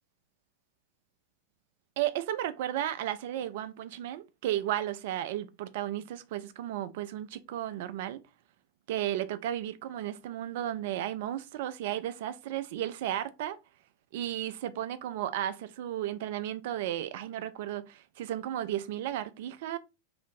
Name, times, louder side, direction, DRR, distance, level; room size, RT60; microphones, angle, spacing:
voice 1, 2.0-8.2 8.9-13.6 14.1-19.8, right 12 dB, 50° right, 0.3 m, -34 dB
2.6 x 2.5 x 3.6 m
figure-of-eight pair, 90°, 0 cm